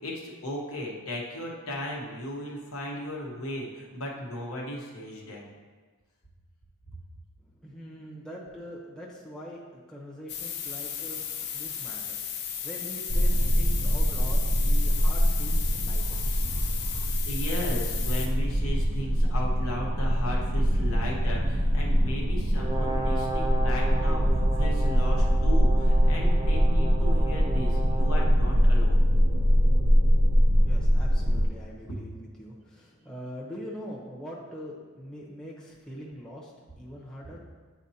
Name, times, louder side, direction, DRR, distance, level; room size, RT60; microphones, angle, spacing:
voice 1, 0.0-5.5 11.2-11.3 17.0-29.1 31.9-32.0, left 1 dB, 70° left, -2 dB, 1.2 m, -36 dB
voice 2, 7.4-17.1 30.6-37.4, equal, 5° left, -5 dB, 0.9 m, -43 dB
sound 1, 10.3-18.3, left 8 dB, 50° left, 0.6 m, -35 dB
sound 2, 13.1-31.5, equal, 65° right, 0.8 m, -23 dB
Brass instrument, 22.5-28.4, right 1 dB, 20° right, 0.7 m, -35 dB
9.0 x 4.4 x 2.8 m, 1.4 s
head